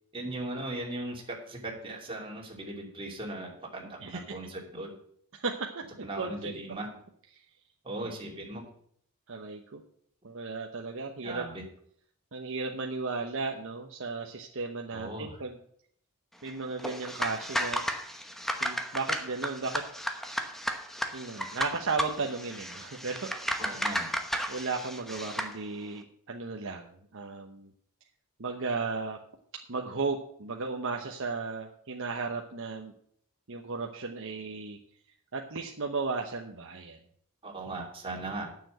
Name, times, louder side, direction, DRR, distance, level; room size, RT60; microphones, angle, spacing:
voice 1, 0.1-4.9 6.0-6.9 7.8-8.7 11.2-11.7 14.9-15.4 23.6-24.1 37.4-38.5, right 2 dB, 25° right, -1 dB, 2.8 m, -38 dB
voice 2, 4.0-4.3 5.3-6.5 9.3-9.8 10.2-11.5 12.3-15.6 16.4-17.9 18.6-19.8 21.1-23.3 23.7-23.9 24.5-27.7 28.4-29.2 29.7-32.9 33.5-34.8 35.3-37.0, right 4 dB, 60° right, 2 dB, 1.0 m, -35 dB
sound 1, 16.8-25.5, equal, ahead, 1.0 m, -34 dB
9.2 x 7.1 x 7.7 m, 0.64 s
head